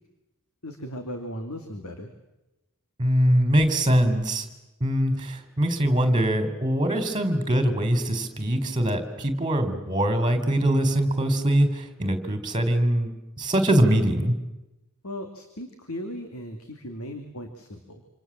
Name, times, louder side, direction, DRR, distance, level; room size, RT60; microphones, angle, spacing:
voice 1, 0.6-2.1 15.0-18.0, equal, 70° left, 5 dB, 2.9 m, -37 dB
voice 2, 3.0-4.5 4.8-14.3, right 1 dB, 20° right, 9 dB, 4.0 m, -23 dB
27.5 x 27.0 x 7.6 m, 0.97 s
head